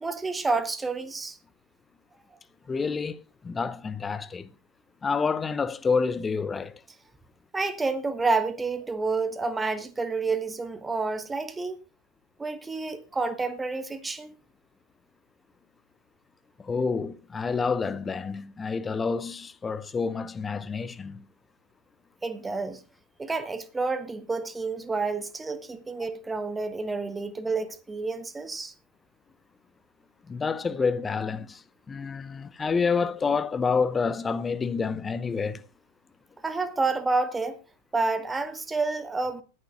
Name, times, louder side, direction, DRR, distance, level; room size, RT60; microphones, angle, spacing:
voice 1, 0.0-1.4 7.5-11.8 12.4-14.3 22.2-22.8 23.2-28.7 36.4-37.6 37.9-39.4, right 3 dB, 10° right, 1.0 m, -29 dB
voice 2, 2.7-4.5 5.0-6.8 16.6-21.3 30.3-35.7, left 5 dB, 15° left, 0.6 m, -28 dB
19.5 x 11.0 x 2.5 m
figure-of-eight pair, 90°, 0 cm